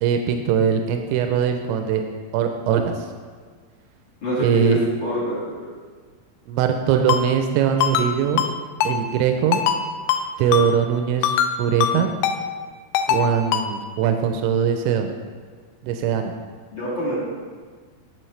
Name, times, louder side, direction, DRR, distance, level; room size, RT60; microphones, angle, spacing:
voice 1, 0.0-2.0 2.3-3.1 4.4-4.8 6.5-8.4 8.8-9.6 10.4-12.1 13.1-15.1 15.8-16.3, right 8 dB, 85° right, 5 dB, 2.9 m, -21 dB
voice 2, 4.2-4.8 5.0-5.4 16.7-17.2, left 1 dB, 40° left, -9 dB, 1.7 m, -25 dB
Ringtone, 7.1-7.2 7.8-8.1 8.4-8.5 8.8-8.9 9.5-9.8 10.1-10.2 10.5-10.7 11.2-11.5 11.8-11.9 12.2-12.4 12.9-13.2 13.5-13.7, left 9 dB, 85° left, 2.5 m, -21 dB
10.0 x 7.0 x 3.2 m, 1.5 s
omnidirectional pair, 5.2 m